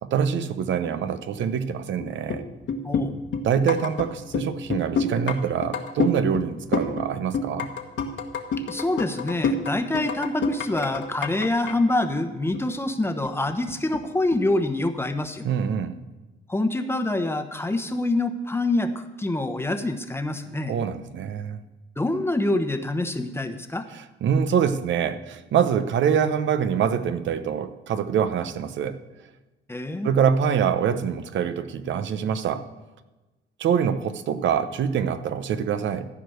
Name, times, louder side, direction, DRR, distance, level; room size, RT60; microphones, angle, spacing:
voice 1, 0.0-2.4 3.4-7.7 15.4-16.0 20.7-21.6 23.9-29.0 30.0-32.6 33.6-36.1, right 7 dB, 70° right, 11 dB, 0.9 m, -25 dB
sound 1, 2.0-2.4 2.7-4.1 4.3-5.4 5.6-6.5 6.7-7.1 7.3-11.7 12.0-12.1 12.5-12.7 13.2-14.0 14.3-14.4, left 4 dB, 70° left, 1.4 m, -27 dB
voice 2, 8.7-15.4 16.5-20.7 22.0-23.9 29.7-30.1, left 2 dB, 10° left, 8 dB, 1.0 m, -26 dB
15.0 x 5.1 x 7.9 m, 1.1 s
cardioid pair, 90°, 20 cm